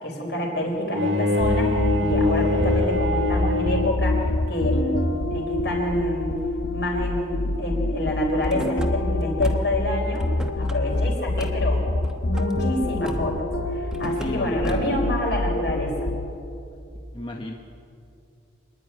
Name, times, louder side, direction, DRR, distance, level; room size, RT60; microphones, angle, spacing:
voice 1, 0.0-6.3 6.7-10.3 10.6-11.8 12.2-13.4 13.7-16.1, left 1 dB, 60° left, 1 dB, 4.9 m, -27 dB
Bowed string instrument, 0.9-4.2, left 1 dB, 85° right, 1.7 m, -25 dB
sound 1, 1.4-16.6, left 2 dB, 90° left, 1.1 m, -26 dB
Car / Slam, 8.4-8.9 9.4-9.8 10.1-10.8 11.4-11.6 12.0-12.5 13.0-13.5 13.9-14.3 14.6-15.0, equal, 5° right, 1.1 m, -36 dB
voice 2, 14.2-15.2 17.1-17.5, left 1 dB, 25° left, 1 dB, 1.1 m, -33 dB
25.5 x 10.5 x 9.9 m, 2.6 s
head